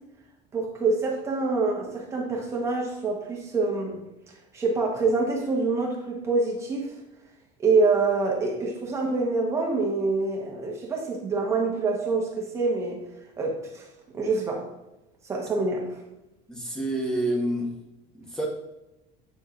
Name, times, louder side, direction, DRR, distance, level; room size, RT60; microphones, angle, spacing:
voice 1, 0.5-4.0 4.5-6.9 7.6-13.0 13.4-13.9 14.1-14.6 15.2-16.0, right 3 dB, 20° right, -1 dB, 1.1 m, -26 dB
voice 2, 16.5-17.7 18.1-18.5, right 1 dB, 5° left, -1 dB, 1.0 m, -28 dB
8.8 x 4.2 x 2.5 m, 0.97 s
cardioid pair, 165°, 16 cm